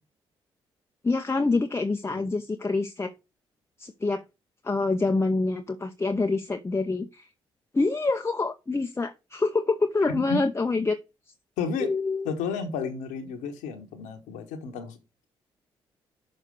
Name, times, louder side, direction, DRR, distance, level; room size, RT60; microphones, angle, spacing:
voice 1, 1.0-3.1 3.8-4.2 4.6-7.3 7.7-11.0 11.8-12.3, left 3 dB, 20° left, 0.8 m, -26 dB
voice 2, 11.6-11.9 12.2-15.0, left 5 dB, 75° left, 1.2 m, -32 dB
6.6 x 4.9 x 6.3 m
hypercardioid pair, 40°, 13 cm